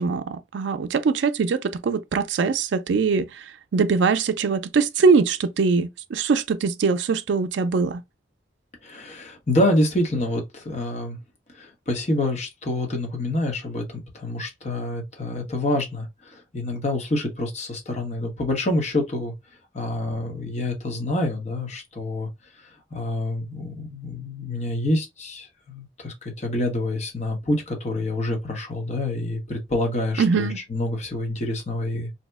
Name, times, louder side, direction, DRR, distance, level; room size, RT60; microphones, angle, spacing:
voice 1, 0.0-3.4 3.7-8.0 30.2-30.6, right 5 dB, 80° right, 0.4 m, -22 dB
voice 2, 8.8-11.2 11.5-19.3 19.7-22.3 22.9-32.1, left 1 dB, 40° left, 1.0 m, -27 dB
2.7 x 2.1 x 3.3 m
head